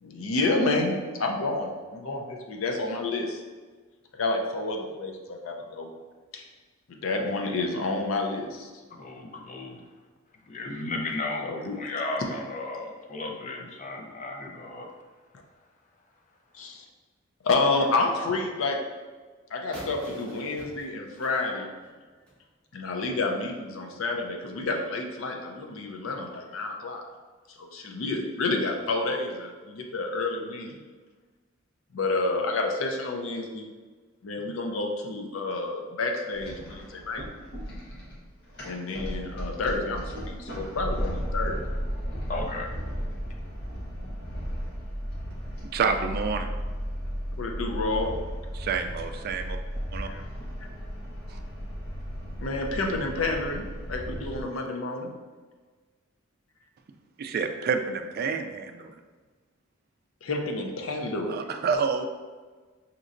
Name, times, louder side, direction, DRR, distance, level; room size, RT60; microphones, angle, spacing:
voice 1, 0.0-3.4 4.2-5.9 6.3-6.5 6.9-8.7 11.4-11.8 16.5-16.8 17.4-18.8 19.5-21.7 22.7-27.0 27.5-30.8 31.9-33.7 34.2-37.2 38.6-41.6 47.4-48.2 50.1-50.2 52.4-55.1 60.2-61.5, left 2 dB, 85° left, 3 dB, 0.6 m, -29 dB
voice 2, 8.9-9.8 10.5-14.9 42.3-42.7 53.2-53.4, left 2 dB, 40° left, 2 dB, 0.5 m, -35 dB
sound 1, 19.7-22.4, right 1 dB, 5° left, 1.0 m, -46 dB
sound 2, 36.3-54.4, equal, 55° left, 1.1 m, -35 dB
voice 3, 45.7-46.5 48.5-49.6 49.9-50.1 51.3-51.4 57.2-59.0 61.3-62.1, right 5 dB, 50° right, 6 dB, 0.3 m, -28 dB
5.2 x 2.9 x 2.5 m, 1.4 s
head